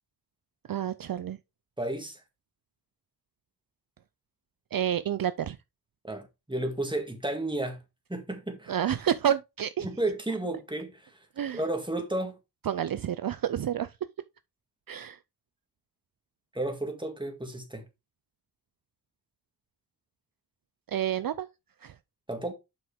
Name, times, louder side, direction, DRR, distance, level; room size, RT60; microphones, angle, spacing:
voice 1, 0.7-1.4 4.7-5.6 8.7-9.9 11.4-11.6 12.7-13.9 14.9-15.2 20.9-21.5 21.8-21.9, right 10 dB, 60° right, 0.5 m, -29 dB
voice 2, 1.8-2.2 6.0-7.8 8.1-8.7 9.8-11.1 11.5-12.4 16.5-17.9 22.3-22.5, right 1 dB, 10° right, 2.1 m, -32 dB
7.7 x 5.9 x 3.5 m
wide cardioid pair, 85°, 39 cm